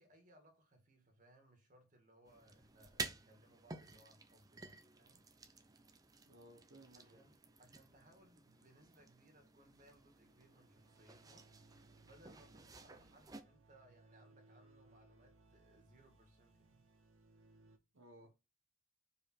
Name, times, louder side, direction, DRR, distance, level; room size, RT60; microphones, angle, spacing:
voice 1, 0.0-5.2 6.2-6.3 6.9-16.9, right 1 dB, 35° right, 1.9 m, -67 dB
sound 1, 2.3-13.4, right 4 dB, 15° right, 0.5 m, -52 dB
voice 2, 6.3-7.2 17.9-18.3, right 1 dB, 65° right, 1.0 m, -60 dB
sound 2, 9.6-17.8, right 2 dB, 80° right, 1.5 m, -67 dB
4.9 x 4.8 x 4.5 m
head